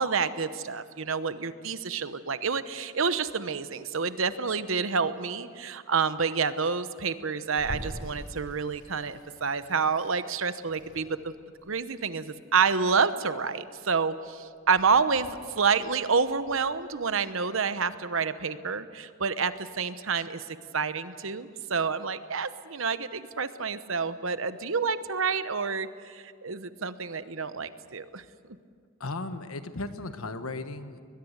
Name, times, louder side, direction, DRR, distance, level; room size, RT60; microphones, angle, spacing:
voice 1, 0.0-11.3 11.7-28.2, right 5 dB, 65° right, 12 dB, 1.0 m, -28 dB
Water tap faucet / Sink (filling or washing), 7.6-16.6, equal, 60° left, 6.2 m, -45 dB
voice 2, 29.0-31.0, left 2 dB, 85° left, 10 dB, 1.3 m, -36 dB
21.0 x 21.0 x 8.1 m, 2.1 s
head